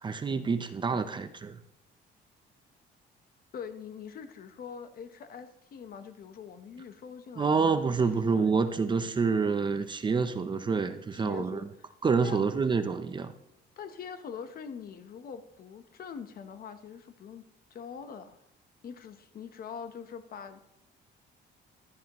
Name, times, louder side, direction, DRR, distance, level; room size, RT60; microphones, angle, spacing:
voice 1, 0.0-1.6 7.4-11.6 12.0-13.3, right 5 dB, 25° right, 10 dB, 0.6 m, -27 dB
voice 2, 3.5-8.0 8.4-8.5 11.1-11.7 12.2-12.4 13.8-17.4 17.7-18.4 18.8-20.7, left 7 dB, 50° left, 10 dB, 1.1 m, -43 dB
15.5 x 11.5 x 3.0 m, 0.82 s
cardioid pair, 145°, 19 cm